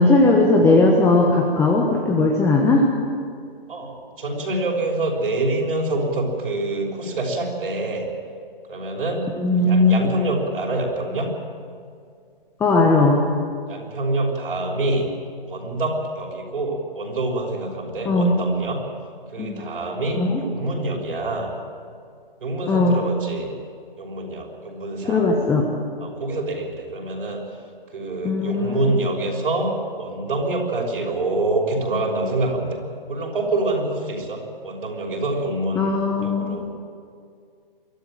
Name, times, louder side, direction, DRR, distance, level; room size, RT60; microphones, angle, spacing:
voice 1, 0.0-2.9 9.4-10.1 12.6-13.2 18.0-18.4 19.4-19.6 20.2-20.4 22.7-23.0 25.1-25.7 28.2-28.9 35.8-36.6, left 2 dB, 10° left, 0 dB, 1.3 m, -18 dB
voice 2, 3.7-8.1 8.7-11.3 13.7-15.1 15.4-18.8 19.3-21.5 22.4-23.5 24.0-25.3 26.0-27.4 27.9-32.8 33.1-36.7, right 2 dB, 70° right, -2 dB, 6.2 m, -26 dB
23.5 x 14.0 x 9.1 m, 2.2 s
hypercardioid pair, 145°, 29 cm